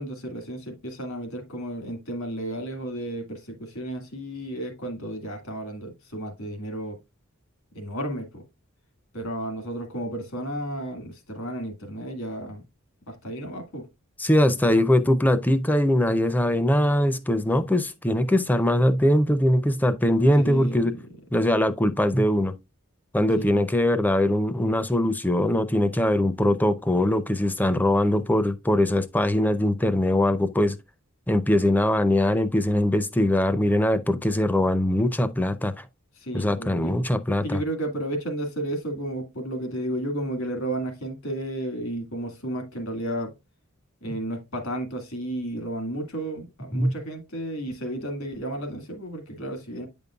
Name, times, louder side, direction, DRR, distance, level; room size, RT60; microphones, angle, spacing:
voice 1, 0.0-7.0 7.7-8.5 9.1-12.7 13.1-13.9 20.4-20.9 23.4-23.6 36.2-36.9 37.4-43.3 44.0-49.9, right 1 dB, 70° left, 1.9 m, -32 dB
voice 2, 14.2-21.0 21.3-22.5 23.1-30.8 31.3-35.8 36.3-37.6 46.7-46.9, left 1 dB, 10° left, 0.4 m, -22 dB
8.8 x 5.3 x 2.3 m
head